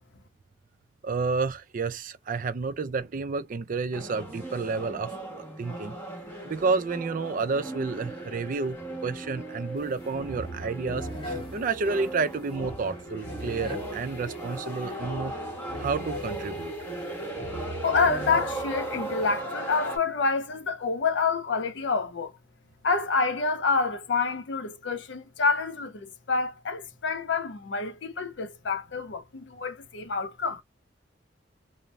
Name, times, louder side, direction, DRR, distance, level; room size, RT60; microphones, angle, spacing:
voice 1, 1.0-5.1 5.6-6.0 6.4-8.8 9.0-15.3 15.8-16.7, right 4 dB, 50° right, 0.4 m, -30 dB
sound 1, 3.9-20.0, right 1 dB, 10° left, 1.1 m, -37 dB
sound 2, 9.8-9.9 10.1-19.4, equal, 30° left, 1.1 m, -40 dB
voice 2, 17.8-22.3 22.8-30.6, left 4 dB, 75° left, 0.6 m, -27 dB
2.6 x 2.0 x 3.2 m
head